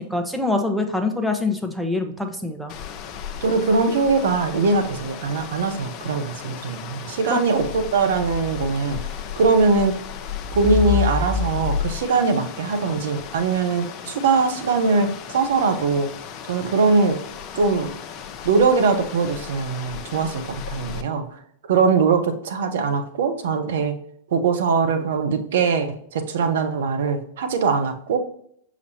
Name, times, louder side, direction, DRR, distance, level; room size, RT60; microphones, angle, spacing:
voice 1, 0.0-2.7 7.3-7.4, left 2 dB, ahead, 4 dB, 1.0 m, -24 dB
Waterfall Iceland, 2.7-21.0, left 7 dB, 40° left, 0.7 m, -32 dB
voice 2, 3.4-9.0 9.4-9.9 10.5-16.1 16.4-17.2 17.5-17.9 18.4-23.9 24.3-28.2, right 4 dB, 65° right, 7 dB, 0.9 m, -21 dB
6.5 x 5.1 x 2.8 m, 0.68 s
hypercardioid pair, 100°, 0 cm